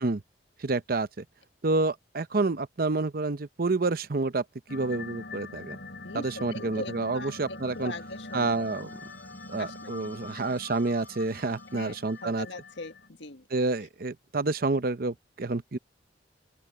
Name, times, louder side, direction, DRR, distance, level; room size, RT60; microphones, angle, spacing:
voice 1, 0.6-1.2 1.6-4.4 4.7-5.8 6.1-7.9 8.3-9.0 9.5-12.5 13.5-15.8, right 3 dB, 55° right, 0.8 m, -29 dB
sound 1, 4.7-13.1, left 2 dB, 65° left, 5.9 m, -44 dB
voice 2, 6.0-8.5 9.6-10.0 10.3-10.6 11.7-13.5, left 3 dB, 90° left, 1.7 m, -41 dB
sound 2, 7.5-12.9, left 2 dB, 10° left, 7.4 m, -58 dB
open air
head